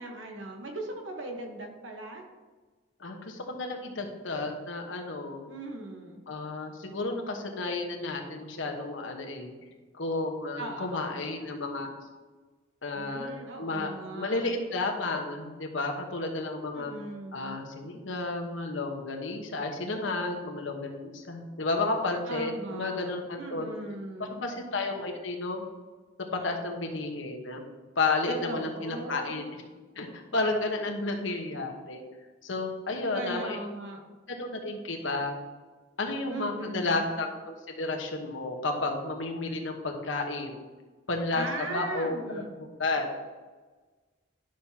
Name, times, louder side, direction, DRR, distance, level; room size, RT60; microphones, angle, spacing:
voice 1, 0.0-2.2 5.5-6.2 10.6-11.1 12.9-14.4 16.7-17.6 22.3-23.1 23.4-24.4 28.3-29.4 33.1-34.0 36.3-37.1 41.3-42.5, right 1 dB, 85° right, 2 dB, 1.2 m, -38 dB
voice 2, 3.0-5.5 6.3-9.5 9.9-11.9 12.8-16.9 17.3-23.7 24.2-25.6 26.3-27.6 27.9-29.4 30.0-32.0 32.4-33.6 34.3-35.3 36.0-40.6 41.1-43.1, left 3 dB, 85° left, 2 dB, 1.2 m, -32 dB
11.5 x 6.4 x 2.8 m, 1.3 s
head